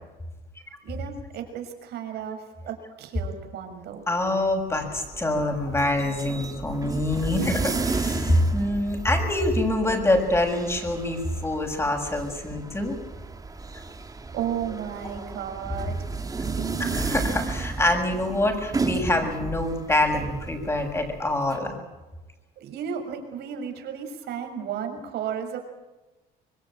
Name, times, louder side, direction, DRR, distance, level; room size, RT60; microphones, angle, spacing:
voice 1, 0.8-4.0 7.5-8.4 14.0-16.1 16.4-17.3 22.6-25.6, right 8 dB, 75° right, 5 dB, 6.3 m, -34 dB
voice 2, 4.1-13.0 16.8-21.8, left 1 dB, 15° left, 5 dB, 7.0 m, -25 dB
sound 1, 4.5-21.6, right 3 dB, 20° right, 2.7 m, -33 dB
25.5 x 22.5 x 9.0 m, 1.1 s
cardioid pair, 110°, 17 cm